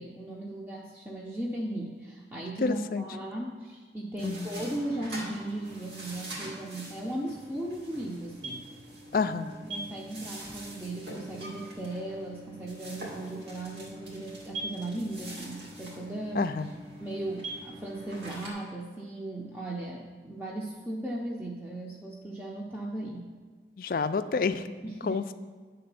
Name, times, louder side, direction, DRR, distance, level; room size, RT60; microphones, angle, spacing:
voice 1, 0.0-8.7 9.1-9.3 9.7-16.5 17.0-23.3 24.8-25.2, right 1 dB, 10° right, -3 dB, 0.6 m, -37 dB
voice 2, 2.6-3.0 4.2-4.5 9.1-9.6 16.3-16.7 23.8-24.7 25.0-25.3, left 4 dB, 50° left, 11 dB, 0.4 m, -29 dB
sound 1, 4.2-18.5, right 1 dB, 75° right, 2.2 m, -43 dB
9.4 x 3.9 x 6.8 m, 1.5 s
head